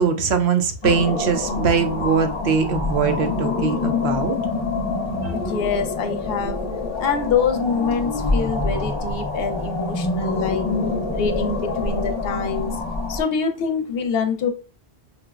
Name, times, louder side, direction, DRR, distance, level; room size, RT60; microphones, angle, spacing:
voice 1, 0.0-4.4 5.2-5.3, right 6 dB, 75° right, 0.9 m, -21 dB
sound 1, 0.8-13.2, left 3 dB, 30° left, 0.7 m, -26 dB
voice 2, 5.3-6.6 7.0-10.7 11.1-12.8 13.1-14.5, left 5 dB, 70° left, 0.7 m, -25 dB
4.9 x 2.0 x 2.3 m
omnidirectional pair, 1.1 m